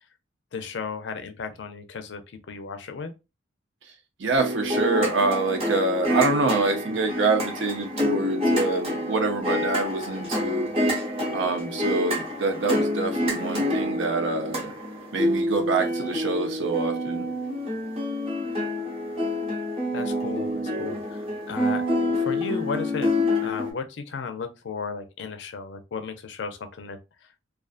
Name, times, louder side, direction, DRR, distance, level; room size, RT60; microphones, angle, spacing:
voice 1, 0.5-2.2 2.5-3.1 19.9-21.8 22.1-23.1 23.4-27.0, left 5 dB, 65° left, 0.4 m, -34 dB
voice 2, 4.2-10.7 11.3-14.7 15.1-17.2, right 3 dB, 70° right, 0.6 m, -26 dB
sound 1, 4.4-23.7, left 1 dB, 30° right, 0.9 m, -27 dB
2.4 x 2.4 x 2.4 m
head